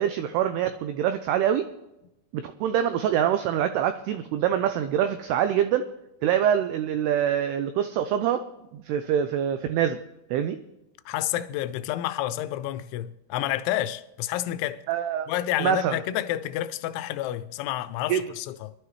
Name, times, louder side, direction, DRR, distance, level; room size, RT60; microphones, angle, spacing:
voice 1, 0.0-1.7 2.3-5.9 6.2-8.5 8.7-10.0 10.3-10.6 14.9-15.3 15.6-15.9 18.1-18.2, right 9 dB, 85° right, 2.3 m, -25 dB
voice 2, 11.1-14.8 15.3-18.7, left 13 dB, 90° left, 3.0 m, -29 dB
23.5 x 11.5 x 3.2 m
omnidirectional pair, 5.2 m